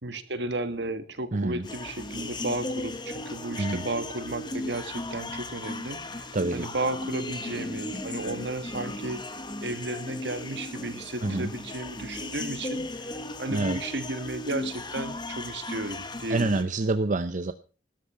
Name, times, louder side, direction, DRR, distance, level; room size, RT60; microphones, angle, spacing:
voice 1, 0.0-9.2 9.6-13.1 13.4-16.7, right 2 dB, 70° right, 1.7 m, -34 dB
voice 2, 1.3-1.7 3.6-3.9 6.3-6.7 11.2-11.5 13.5-13.8 16.3-17.5, right 2 dB, 45° right, 0.7 m, -27 dB
sound 1, 1.6-16.6, left 2 dB, 25° left, 1.5 m, -36 dB
13.0 x 12.0 x 5.7 m
head